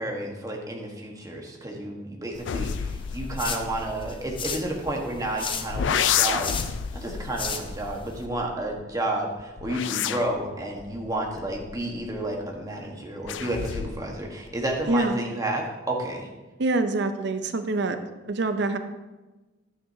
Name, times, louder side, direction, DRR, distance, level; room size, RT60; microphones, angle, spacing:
voice 1, 0.0-6.5 6.9-16.3, right 1 dB, 20° right, 0 dB, 1.4 m, -31 dB
sound 1, 2.3-8.3, left 5 dB, 30° left, 0.7 m, -37 dB
sound 2, 2.5-5.2 5.7-8.8 9.4-12.4 13.2-14.2 14.5-15.0, left 8 dB, 80° left, 0.4 m, -31 dB
voice 2, 14.9-15.2 16.6-18.0 18.3-18.8, right 2 dB, 65° right, 9 dB, 0.7 m, -25 dB
11.0 x 9.3 x 2.8 m, 1.2 s
head